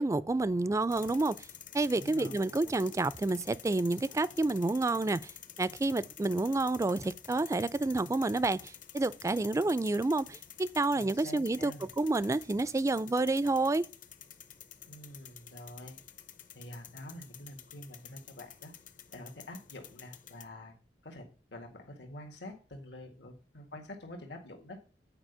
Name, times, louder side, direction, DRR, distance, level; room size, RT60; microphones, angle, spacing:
voice 1, 0.0-1.4 1.7-5.3 5.6-13.9, right 2 dB, 20° right, 0.3 m, -29 dB
sound 1, 0.9-20.4, left 10 dB, 50° left, 0.7 m, -50 dB
voice 2, 1.9-2.4 10.9-11.9 14.9-16.0 16.6-18.7 19.1-20.7 21.0-21.3 21.5-24.8, left 1 dB, 80° left, 1.8 m, -47 dB
8.9 x 4.9 x 6.7 m
head